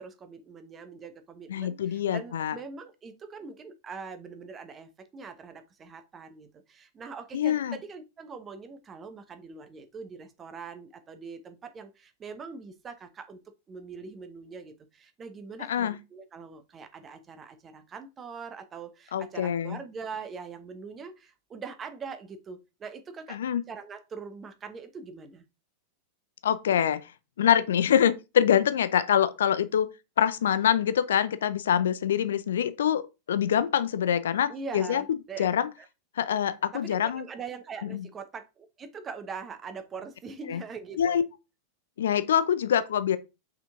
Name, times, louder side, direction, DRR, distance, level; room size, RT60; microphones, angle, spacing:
voice 1, 0.0-13.4 13.7-23.4 23.7-25.4 34.5-35.5 35.8-35.9 36.7-41.2, right 5 dB, 20° right, 1.0 m, -42 dB
voice 2, 1.5-2.6 7.3-7.8 15.7-16.0 19.1-19.8 23.3-23.6 26.4-27.1 27.4-29.9 30.2-33.0 33.3-35.0 35.4-35.7 36.2-37.2 37.9-38.0 40.5-40.6 41.0-41.2 42.0-43.2, left 9 dB, 60° left, 0.5 m, -25 dB
5.7 x 4.5 x 3.6 m
figure-of-eight pair, 90°, 0 cm